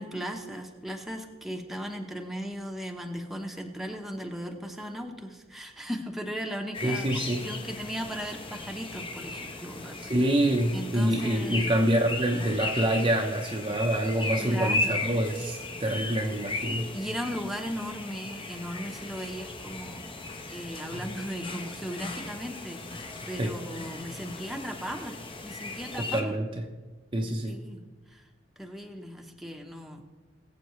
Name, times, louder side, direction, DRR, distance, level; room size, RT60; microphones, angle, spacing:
voice 1, 0.0-7.1 7.4-10.1 10.7-11.7 14.4-15.1 16.9-25.2 25.4-26.3 27.5-27.8 28.1-28.3 28.6-30.0, equal, ahead, 2 dB, 1.0 m, -37 dB
sound 1, 6.7-26.2, left 2 dB, 25° left, 0.9 m, -36 dB
voice 2, 6.8-7.4 10.0-16.9 23.4-23.5 26.1-26.5 27.1-27.6, right 1 dB, 25° right, 2 dB, 0.8 m, -26 dB
21.0 x 7.7 x 3.1 m, 1.3 s
head